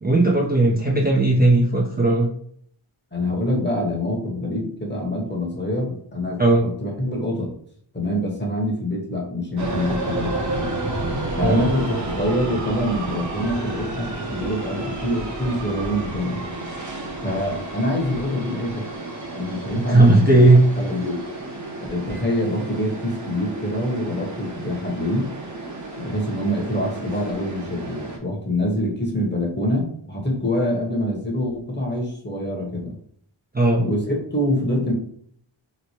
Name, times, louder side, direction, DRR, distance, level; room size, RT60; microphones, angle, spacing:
voice 1, 0.0-2.3 6.4-6.6 11.4-11.7 19.9-20.6 33.5-33.8, right 2 dB, 20° right, -3 dB, 0.5 m, -16 dB
voice 2, 3.1-7.5 7.9-10.4 11.4-16.4 17.2-18.8 19.3-21.2 21.8-25.3 26.0-32.9 33.7-34.9, left 1 dB, 20° left, -1 dB, 1.0 m, -25 dB
sound 1, 9.6-28.2, right 2 dB, 40° right, 0.8 m, -31 dB
3.1 x 2.1 x 4.2 m, 0.65 s
wide cardioid pair, 90°, 48 cm